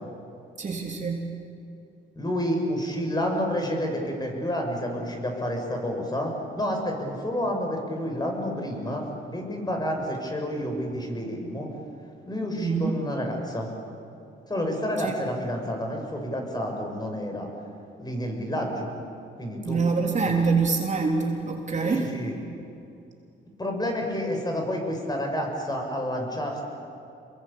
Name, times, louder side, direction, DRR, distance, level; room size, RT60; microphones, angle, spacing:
voice 1, 0.6-1.3 12.6-12.9 15.0-15.1 19.6-22.1, right 4 dB, 35° right, 1 dB, 3.5 m, -25 dB
voice 2, 2.1-11.7 12.3-13.7 14.5-17.5 18.0-18.9 19.4-19.8 20.2-20.3 21.8-22.5 23.6-26.6, equal, 20° left, 2 dB, 6.8 m, -29 dB
27.5 x 22.5 x 8.8 m, 2.7 s
cardioid pair, 90°, 20 cm